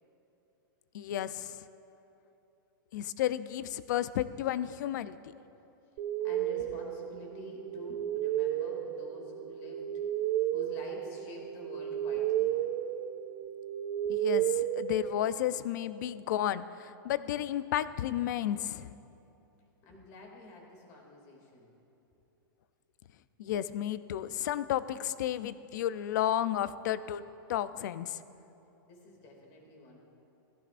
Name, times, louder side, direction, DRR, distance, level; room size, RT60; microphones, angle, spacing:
voice 1, 0.9-1.6 2.9-5.3 14.1-18.9 23.4-27.2 27.5-28.2, left 11 dB, 55° left, 14 dB, 0.5 m, -32 dB
voice 2, 5.9-10.0 10.5-12.6 19.8-21.7 28.8-30.0, left 1 dB, 30° left, 0 dB, 2.5 m, -48 dB
sound 1, 6.0-15.7, right 12 dB, 30° right, 0.3 m, -33 dB
17.5 x 16.0 x 2.5 m, 2.9 s
supercardioid pair, 160°, 12 cm